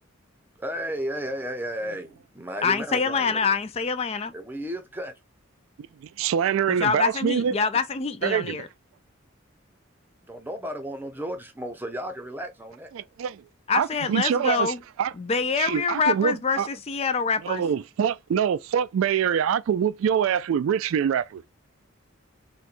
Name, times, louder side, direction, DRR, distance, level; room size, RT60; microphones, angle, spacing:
voice 1, 0.6-3.6 4.3-5.2 10.2-12.9, equal, 10° right, 0.7 m, -34 dB
voice 2, 2.6-4.3 6.7-8.7 13.7-14.8 15.2-17.6, left 5 dB, 30° left, 0.3 m, -25 dB
voice 3, 6.0-7.5 8.2-8.6 12.9-13.4 13.7-15.1 15.6-16.7 17.4-21.4, right 8 dB, 80° right, 0.3 m, -25 dB
4.3 x 2.3 x 2.4 m
head